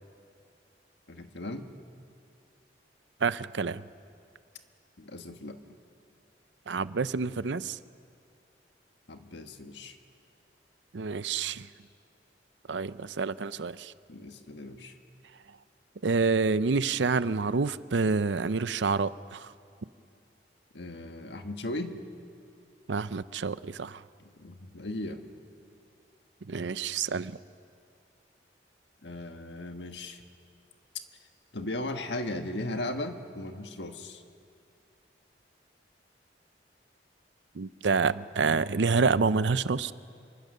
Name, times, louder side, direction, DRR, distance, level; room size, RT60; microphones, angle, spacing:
voice 1, 1.1-1.7 5.0-5.6 9.1-10.0 14.1-14.9 20.7-22.0 24.2-25.2 29.0-30.2 31.5-34.2, left 1 dB, 75° left, 6 dB, 1.5 m, -37 dB
voice 2, 3.2-3.8 6.7-7.8 10.9-11.7 12.7-13.9 16.0-19.5 22.9-24.0 26.5-27.3 37.5-39.9, right 4 dB, 85° right, 15 dB, 0.6 m, -28 dB
26.5 x 24.0 x 6.7 m, 2.4 s
head